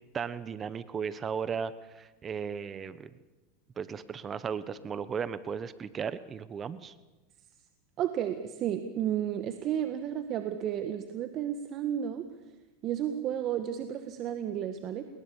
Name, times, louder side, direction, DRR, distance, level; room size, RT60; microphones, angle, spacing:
voice 1, 0.1-3.1 3.8-6.9, right 6 dB, 30° right, 15 dB, 1.1 m, -36 dB
voice 2, 8.0-12.2 12.8-15.0, right 10 dB, 45° right, 8 dB, 1.7 m, -32 dB
29.0 x 21.0 x 7.3 m, 1.1 s
hypercardioid pair, 105°, 0 cm